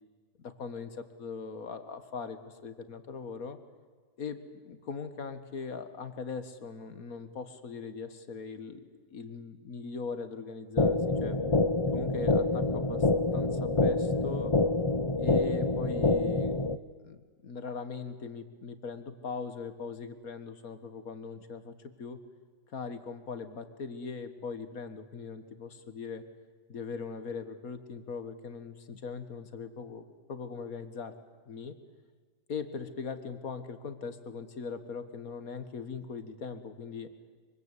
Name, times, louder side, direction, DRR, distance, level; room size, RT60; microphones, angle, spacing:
voice 1, 0.4-3.6 4.2-8.8 9.1-11.4 11.9-13.1 13.3-14.5 15.2-16.6 17.0-22.2 22.7-26.2 26.7-31.1 31.5-31.7 32.5-37.1, left 5 dB, 55° left, 10 dB, 1.9 m, -40 dB
sound 1, 10.8-16.8, left 2 dB, 40° left, 0.4 m, -27 dB
24.5 x 24.0 x 8.2 m, 1.5 s
omnidirectional pair, 1.8 m